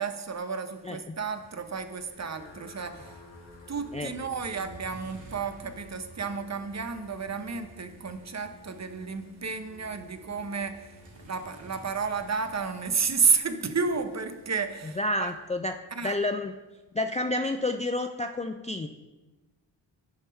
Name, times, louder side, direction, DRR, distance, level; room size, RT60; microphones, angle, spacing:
voice 1, 0.0-3.2 3.7-15.3 15.9-16.2, right 5 dB, 35° right, 9 dB, 0.8 m, -31 dB
Motor vehicle (road), 1.3-17.4, equal, 70° right, 2.2 m, -54 dB
sound 1, 2.0-13.5, left 2 dB, 60° left, 1.1 m, -53 dB
voice 2, 15.0-15.8 16.0-16.5 16.9-18.9, left 2 dB, 15° left, 6 dB, 0.3 m, -29 dB
9.4 x 3.5 x 5.5 m, 1.1 s
cardioid pair, 50°, 46 cm